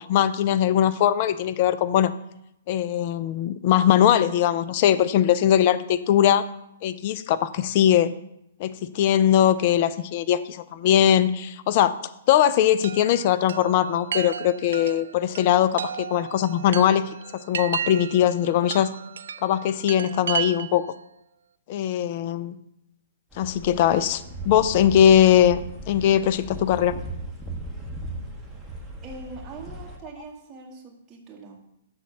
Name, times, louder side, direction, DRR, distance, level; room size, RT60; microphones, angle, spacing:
voice 1, 0.0-2.1 2.7-6.4 6.8-8.1 8.6-12.0 12.3-17.0 17.3-18.9 19.4-20.9 21.7-22.6 23.4-25.6 25.9-27.0, left 10 dB, 45° left, 14 dB, 0.4 m, -20 dB
Chime, 12.8-20.9, right 8 dB, 70° right, 0.4 m, -34 dB
sound 1, 23.3-30.0, right 1 dB, 5° right, 1.3 m, -37 dB
voice 2, 29.0-31.6, right 4 dB, 20° right, -4 dB, 2.1 m, -42 dB
7.1 x 4.1 x 6.3 m, 0.80 s
hypercardioid pair, 130°, 0 cm